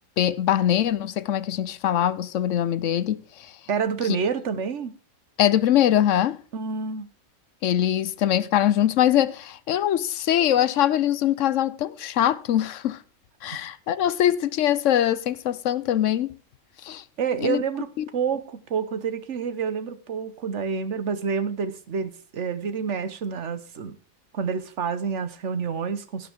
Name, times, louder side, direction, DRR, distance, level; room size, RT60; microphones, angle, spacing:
voice 1, 0.2-3.5 5.4-6.4 7.6-13.0 13.4-16.4 16.8-17.0 17.4-17.6 18.0-18.1, left 11 dB, 65° left, 1.0 m, -22 dB
voice 2, 3.7-4.9 6.5-7.1 17.2-24.0 24.3-26.3, right 6 dB, 55° right, 1.4 m, -28 dB
12.0 x 11.5 x 3.6 m
omnidirectional pair, 1.5 m